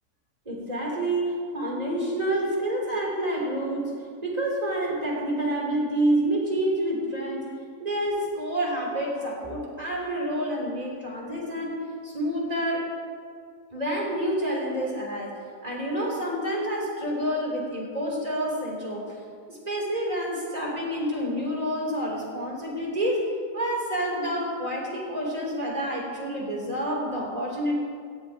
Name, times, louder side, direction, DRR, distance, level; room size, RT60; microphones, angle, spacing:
voice 1, 0.4-3.9 4.2-7.5 7.8-12.8 13.7-15.3 15.6-19.0 19.5-23.2 23.5-27.8, right 1 dB, 25° right, -4 dB, 3.5 m, -28 dB
18.0 x 15.5 x 3.0 m, 2.1 s
omnidirectional pair, 1.7 m